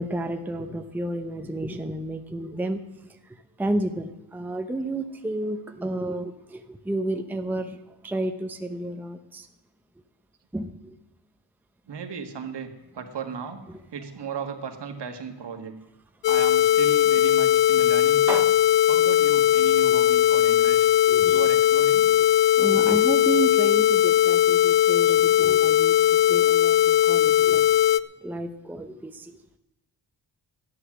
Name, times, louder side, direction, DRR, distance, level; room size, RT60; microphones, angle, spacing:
voice 1, 0.0-7.8 8.0-9.5 10.5-10.9 13.7-13.8 18.3-18.5 19.9-20.0 21.1-21.5 22.1-22.2 22.6-25.9 26.2-27.8 28.2-29.4, right 1 dB, 5° right, 5 dB, 0.7 m, -31 dB
voice 2, 11.9-12.7 12.9-13.6 13.9-15.8 16.3-18.4 18.9-20.9 21.3-22.1, right 6 dB, 65° right, 5 dB, 1.8 m, -35 dB
sound 1, 16.2-28.0, left 12 dB, 75° left, 0.5 m, -19 dB
13.5 x 10.0 x 6.1 m, 0.95 s
wide cardioid pair, 155°, 44 cm